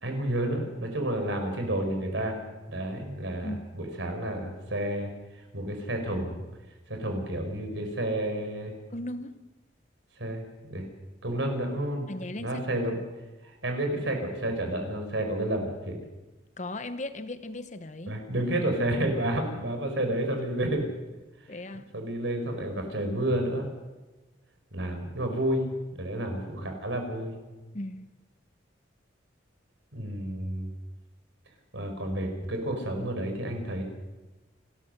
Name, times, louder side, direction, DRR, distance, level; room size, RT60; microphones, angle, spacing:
voice 1, 0.0-2.4 2.7-5.1 5.5-6.4 6.9-8.7 10.2-10.4 10.7-10.9 11.2-12.1 12.4-12.9 13.4-16.0 18.1-20.9 21.9-23.7 24.7-25.7 26.0-27.3 29.9-30.7 31.7-33.8, right 1 dB, 75° right, 5.1 m, -30 dB
voice 2, 8.9-9.4 12.1-12.9 16.6-18.2 20.3-20.4 21.5-21.9 27.7-28.1, left 1 dB, 40° left, 1.0 m, -37 dB
29.5 x 14.0 x 6.6 m
head